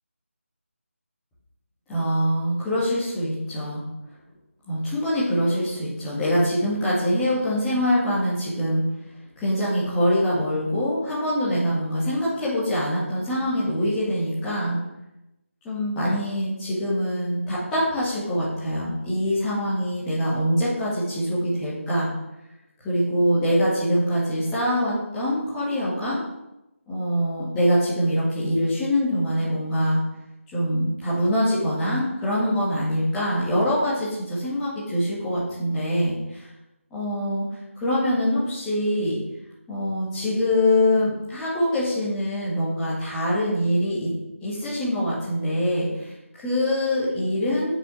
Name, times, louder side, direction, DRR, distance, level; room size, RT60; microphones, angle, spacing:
voice 1, 1.9-3.8 4.7-8.8 9.4-14.8 15.6-22.1 22.8-26.2 26.9-30.0 30.5-36.5 36.9-39.2 39.7-44.1 44.4-47.8, equal, 5° left, -11 dB, 2.0 m, -24 dB
9.7 x 6.1 x 6.2 m, 0.92 s
figure-of-eight pair, 160°, 7 cm